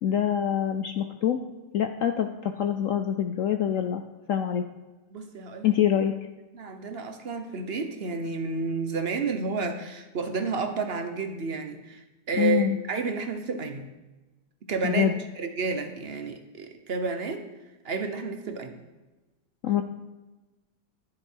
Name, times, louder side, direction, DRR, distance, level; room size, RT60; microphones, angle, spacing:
voice 1, 0.0-1.4 1.7-4.0 4.3-4.6 5.6-6.1 12.4-12.8 14.8-15.2 19.6-19.8, left 9 dB, 65° left, 7 dB, 0.8 m, -25 dB
voice 2, 5.1-5.7 6.5-13.9 14.7-17.5 17.8-18.9, right 4 dB, 40° right, 6 dB, 1.0 m, -31 dB
11.0 x 10.5 x 4.6 m, 1.1 s
omnidirectional pair, 1.9 m